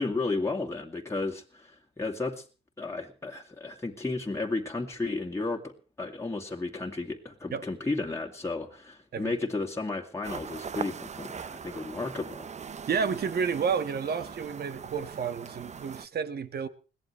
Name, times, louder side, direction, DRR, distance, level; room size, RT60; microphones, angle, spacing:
voice 1, 0.0-2.4 2.8-5.7 6.0-12.5, left 3 dB, 15° left, 2.4 m, -33 dB
sound 1, 10.2-16.1, right 6 dB, 35° right, 0.7 m, -41 dB
voice 2, 12.9-16.7, right 6 dB, 55° right, 1.8 m, -30 dB
21.5 x 16.5 x 3.3 m
cardioid pair, 90°, 20 cm